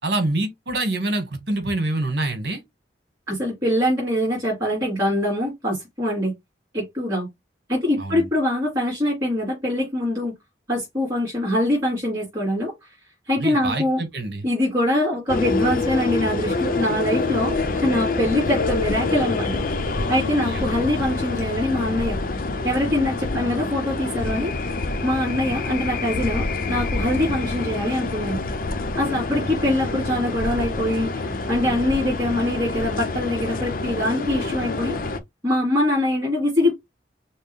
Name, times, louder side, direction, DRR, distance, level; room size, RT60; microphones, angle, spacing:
voice 1, 0.0-2.6 8.0-8.3 13.4-14.5 20.4-20.7 29.4-29.6, right 2 dB, 65° right, 1.5 m, -26 dB
voice 2, 3.3-6.3 6.7-7.3 7.7-10.3 10.7-13.0 13.3-14.0 14.4-22.2 22.6-24.5 25.0-28.4 28.9-35.0 35.4-36.7, left 1 dB, 25° right, 3.4 m, -23 dB
sound 1, 15.3-35.2, left 3 dB, 50° left, 0.6 m, -26 dB
6.3 x 2.1 x 3.3 m
head